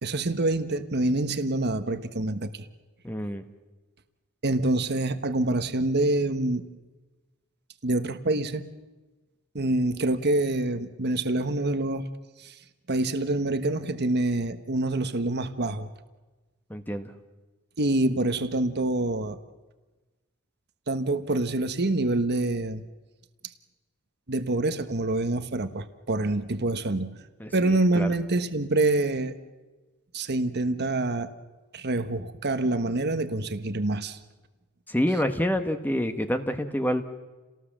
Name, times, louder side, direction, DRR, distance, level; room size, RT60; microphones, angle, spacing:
voice 1, 0.0-2.7 4.4-6.7 7.8-8.6 9.5-12.1 12.4-12.5 12.9-15.9 17.8-19.4 20.9-22.8 24.3-27.1 27.5-29.3 30.1-31.3 31.7-34.2, right 2 dB, 50° right, 10 dB, 1.3 m, -26 dB
voice 2, 3.0-3.4 16.7-17.1 27.4-28.1 34.9-37.1, equal, 10° left, 7 dB, 1.2 m, -27 dB
29.5 x 18.5 x 7.4 m, 1.2 s
head